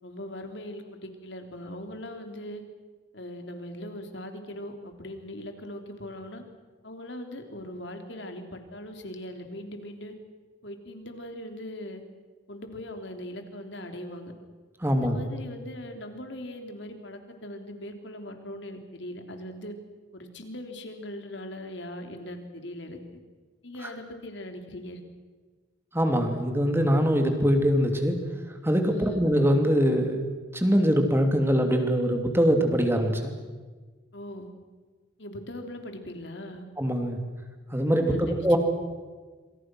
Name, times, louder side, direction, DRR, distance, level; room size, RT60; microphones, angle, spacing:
voice 1, 0.0-2.6 3.1-6.4 6.8-10.1 10.6-12.0 12.5-14.3 14.9-19.7 20.1-23.0 23.6-25.0 28.9-29.2 34.1-34.5 35.2-36.6 38.1-38.6, left 1 dB, 65° left, 5 dB, 3.5 m, -40 dB
voice 2, 14.8-15.2 25.9-28.1 28.6-30.3 30.5-33.3 36.8-37.2 37.7-38.6, equal, 10° right, 5 dB, 2.9 m, -23 dB
26.5 x 26.5 x 6.3 m, 1.4 s
head